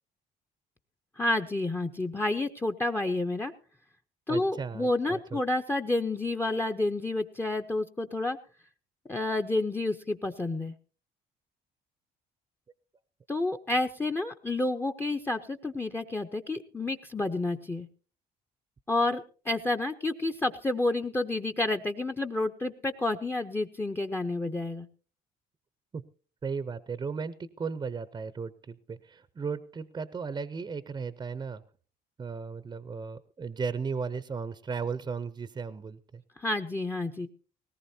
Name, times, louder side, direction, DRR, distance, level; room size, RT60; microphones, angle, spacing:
voice 1, 1.2-3.5 4.3-8.4 9.1-10.7 13.3-17.9 18.9-24.9 36.4-37.3, left 2 dB, 15° left, 10 dB, 0.7 m, -30 dB
voice 2, 4.3-5.4 25.9-26.0 26.4-31.6 32.2-36.2, right 5 dB, 25° right, 14 dB, 0.6 m, -35 dB
19.5 x 18.0 x 2.7 m, 0.39 s
cardioid pair, 110°, 17 cm